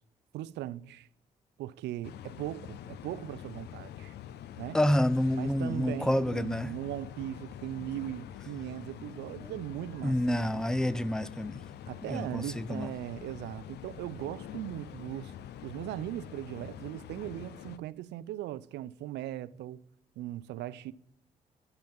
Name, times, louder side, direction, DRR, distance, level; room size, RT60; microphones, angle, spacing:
voice 1, 0.3-1.1 1.6-4.1 4.6-4.8 5.3-10.6 11.9-15.3 15.6-19.8 20.2-20.9, right 13 dB, 65° right, 0.5 m, -39 dB
sound 1, 2.0-17.8, left 10 dB, 60° left, 0.5 m, -45 dB
voice 2, 4.7-6.7 9.4-9.5 10.0-11.6 12.0-12.9, left 1 dB, 5° left, 0.5 m, -28 dB
10.5 x 5.7 x 5.4 m
hypercardioid pair, 40°, 19 cm